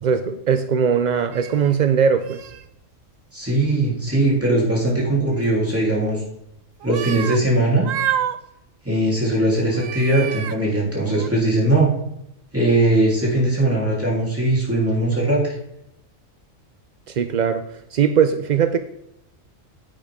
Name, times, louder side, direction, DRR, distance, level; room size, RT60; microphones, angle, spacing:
voice 1, 0.0-2.5 17.1-17.6 17.9-18.8, right 7 dB, 60° right, 9 dB, 0.4 m, -20 dB
sound 1, 1.3-1.7 2.2-2.7 5.0-5.5 6.8-7.5 7.8-8.6 9.7-10.5 11.0-11.3, right 10 dB, 75° right, 1.0 m, -28 dB
voice 2, 3.3-6.2 6.8-7.8 8.8-11.9 12.5-15.5, right 2 dB, 10° right, -4 dB, 3.2 m, -20 dB
9.9 x 8.8 x 3.6 m, 0.78 s
omnidirectional pair, 1.4 m